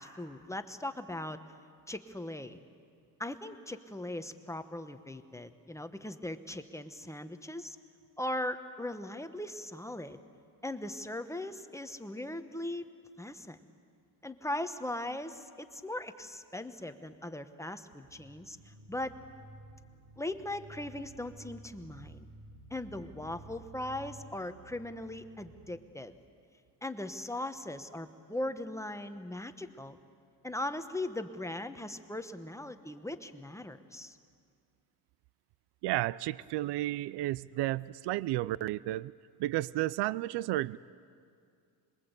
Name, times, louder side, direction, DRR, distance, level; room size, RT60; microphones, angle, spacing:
voice 1, 0.0-1.4 1.9-2.6 3.2-7.8 8.2-10.2 10.6-12.9 13.2-13.6 14.2-19.1 20.2-22.3 22.7-26.2 26.8-30.0 30.4-34.2, left 1 dB, 5° left, 9 dB, 1.2 m, -39 dB
sound 1, 18.0-25.8, right 2 dB, 50° right, 4.0 m, -53 dB
voice 2, 35.8-39.1 39.4-40.8, right 16 dB, 70° right, 21 dB, 0.6 m, -32 dB
26.5 x 22.0 x 8.2 m, 2.3 s
cardioid pair, 100°, 42 cm